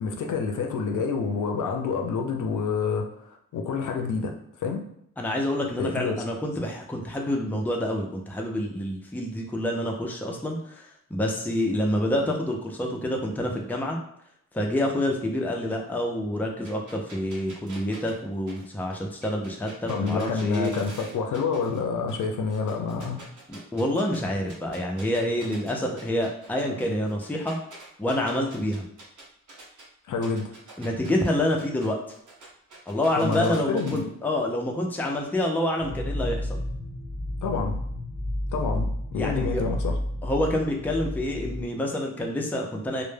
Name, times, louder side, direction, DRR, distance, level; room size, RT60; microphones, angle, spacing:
voice 1, 0.0-4.3 4.6-4.8 5.8-6.2 19.9-23.2 30.1-30.5 33.2-34.1 37.4-37.8 38.5-40.0, left 5 dB, 75° left, 3 dB, 0.5 m, -28 dB
voice 2, 5.2-14.0 14.5-20.7 23.5-27.6 28.0-28.8 30.8-32.0 32.9-36.6 39.1-39.6 40.2-43.0, left 1 dB, 5° left, 0 dB, 0.4 m, -27 dB
sound 1, 16.6-21.8 22.1-24.2 24.5-29.8 30.2-34.0, right 2 dB, 80° right, 0.8 m, -46 dB
sound 2, 35.8-41.6, left 1 dB, 40° right, 0.6 m, -31 dB
2.1 x 2.1 x 3.2 m, 0.72 s
wide cardioid pair, 90°, 31 cm